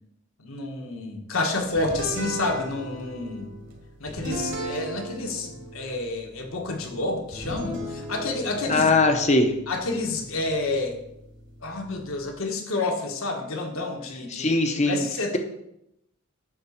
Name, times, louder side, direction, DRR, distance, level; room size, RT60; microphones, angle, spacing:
voice 1, 0.4-3.5 4.0-8.9 9.7-11.0 11.6-14.5 14.9-15.4, left 2 dB, 70° left, 2 dB, 1.6 m, -29 dB
sound 1, 1.8-12.4, right 1 dB, 55° right, 2.3 m, -38 dB
voice 2, 8.7-9.5 14.3-15.1, left 2 dB, 30° left, 6 dB, 0.9 m, -20 dB
10.0 x 3.8 x 7.1 m, 0.81 s
head